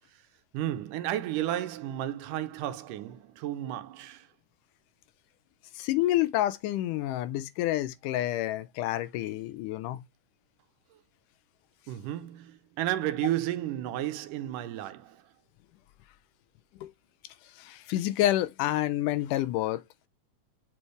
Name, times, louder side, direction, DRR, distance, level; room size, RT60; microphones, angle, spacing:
voice 1, 0.5-4.3 11.9-15.2, right 13 dB, 90° right, 2.3 m, -32 dB
voice 2, 5.8-10.0 16.8-16.9 17.6-19.8, left 14 dB, 85° left, 2.2 m, -28 dB
7.2 x 4.4 x 3.2 m
omnidirectional pair, 3.7 m